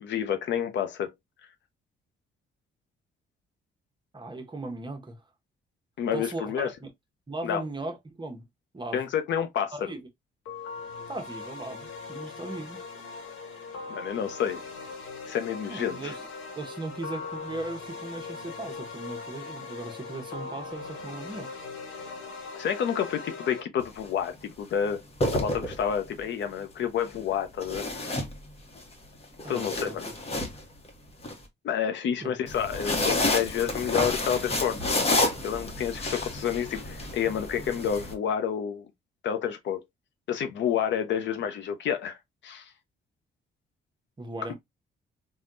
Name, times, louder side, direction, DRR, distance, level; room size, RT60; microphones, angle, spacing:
voice 1, 0.0-1.1 6.0-6.7 7.4-7.6 8.9-9.9 13.9-14.6 15.3-16.1 22.5-25.0 25.3-27.9 29.5-30.0 31.6-35.0 35.4-38.9 39.2-39.8 40.3-42.2 42.4-42.7 44.5-44.6, left 8 dB, 65° left, 0.6 m, -29 dB
voice 2, 4.1-5.2 6.1-6.9 7.3-8.5 8.7-9.1 9.7-10.0 11.1-12.8 15.7-16.3 16.6-21.5 29.4-30.1 32.2-32.3 44.2-44.5, right 2 dB, 25° right, 0.9 m, -38 dB
sound 1, 10.5-23.6, left 4 dB, 80° left, 1.1 m, -40 dB
sound 2, 23.8-24.1 25.0-26.1 27.6-28.8 29.2-31.3 32.5-38.1, left 2 dB, 30° left, 1.0 m, -30 dB
3.5 x 2.2 x 2.5 m
cardioid pair, 90°, 20 cm